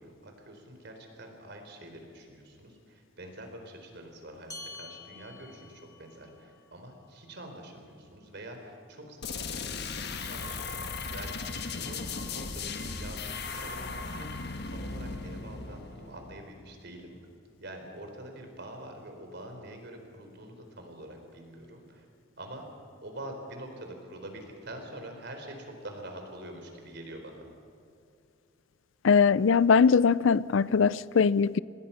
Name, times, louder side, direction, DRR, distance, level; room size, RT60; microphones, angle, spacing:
voice 1, 0.0-17.2 17.6-22.1 22.4-22.6 23.0-27.5, right 1 dB, 55° right, 4.1 m, -45 dB
sound 1, 4.5-9.3, left 3 dB, 20° left, 2.2 m, -50 dB
sound 2, 9.2-16.8, left 4 dB, 55° left, 1.4 m, -37 dB
voice 2, 29.0-31.6, left 5 dB, 70° left, 0.5 m, -21 dB
26.0 x 20.0 x 5.8 m
head